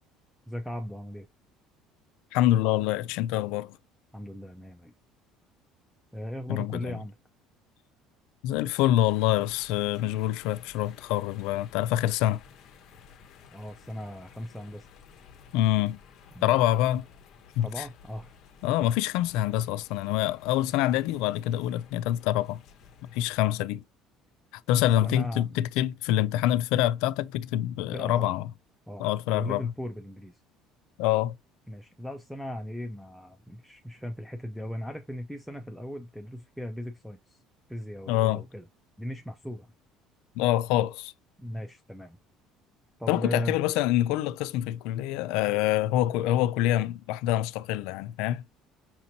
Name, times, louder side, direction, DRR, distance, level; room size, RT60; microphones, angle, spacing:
voice 1, 0.5-1.3 4.1-4.9 6.1-7.2 13.5-14.9 16.4-16.6 17.6-18.4 18.8-18.9 25.0-25.6 27.9-28.4 28.9-30.4 31.7-37.4 37.7-38.7 39.0-39.7 41.4-42.2 43.0-43.6, equal, ahead, 0.5 m, -38 dB
voice 2, 2.3-3.8 6.5-7.0 8.4-12.4 15.5-16.0 16.4-17.1 17.6-17.8 18.6-22.6 23.1-23.8 24.7-28.4 29.0-29.6 31.0-31.3 38.1-38.4 40.4-41.1 43.1-48.4, left 13 dB, 80° left, 0.3 m, -26 dB
sound 1, 9.1-23.4, left 7 dB, 50° left, 0.9 m, -54 dB
5.8 x 2.9 x 2.7 m
cardioid pair, 135°, 0 cm